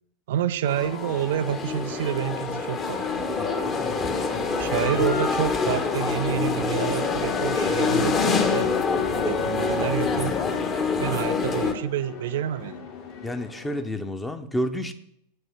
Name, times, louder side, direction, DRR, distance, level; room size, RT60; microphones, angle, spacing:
voice 1, 0.3-3.3 4.6-8.7 9.2-10.4 11.0-12.9, right 11 dB, 55° right, 11 dB, 0.4 m, -28 dB
sound 1, 0.7-11.7, left 4 dB, 25° left, 1.3 m, -25 dB
sound 2, 1.0-13.8, left 5 dB, 45° left, 2.2 m, -43 dB
voice 2, 3.4-4.1 13.2-14.9, equal, 5° left, 8 dB, 0.9 m, -31 dB
8.7 x 6.4 x 6.5 m, 0.75 s
figure-of-eight pair, 90°, 0 cm